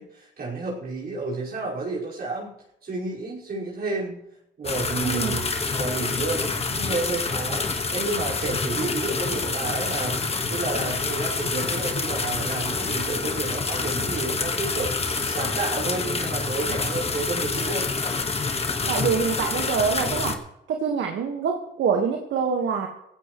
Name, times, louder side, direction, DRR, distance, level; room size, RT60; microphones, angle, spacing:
voice 1, 0.0-2.5 2.8-4.2 4.6-5.5 5.7-7.6 7.9-10.2 10.5-17.9, right 3 dB, 50° right, -6 dB, 5.3 m, -31 dB
sound 1, 4.6-20.4, left 4 dB, 30° left, 1.6 m, -27 dB
voice 2, 5.0-5.4 18.9-20.4 20.7-22.9, right 6 dB, 70° right, 2 dB, 1.7 m, -25 dB
17.0 x 16.5 x 3.2 m, 0.79 s
cardioid pair, 90°, 20 cm